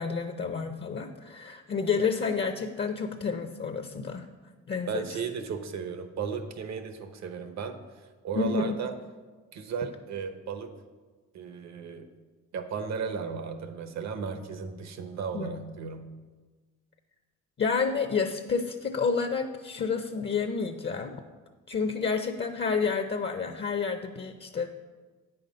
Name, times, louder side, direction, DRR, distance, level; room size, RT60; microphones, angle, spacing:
voice 1, 0.0-4.3 4.7-5.0 8.4-8.8 15.3-15.5 17.6-21.2 21.7-24.7, left 5 dB, 35° left, 7 dB, 0.6 m, -29 dB
voice 2, 4.9-8.9 9.5-10.7 11.3-12.1 12.5-16.1, right 6 dB, 65° right, 8 dB, 1.0 m, -35 dB
8.7 x 5.7 x 5.3 m, 1.4 s
cardioid pair, 90°, 30 cm